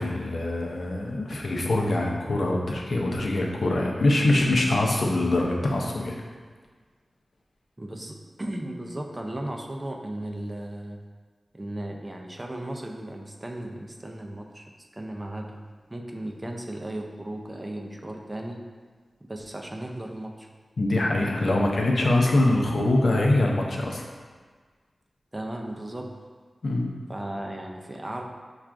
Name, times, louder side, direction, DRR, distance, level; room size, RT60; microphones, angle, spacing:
voice 1, 0.0-6.2 20.8-24.1 26.6-26.9, left 2 dB, 75° left, 0 dB, 0.5 m, -24 dB
voice 2, 7.8-11.0 11.5-15.6 15.9-18.6 19.3-20.5 21.5-21.9 25.3-26.1 27.1-28.2, right 1 dB, 20° right, 1 dB, 0.3 m, -36 dB
5.5 x 2.3 x 2.4 m, 1.5 s
wide cardioid pair, 85°, 0 cm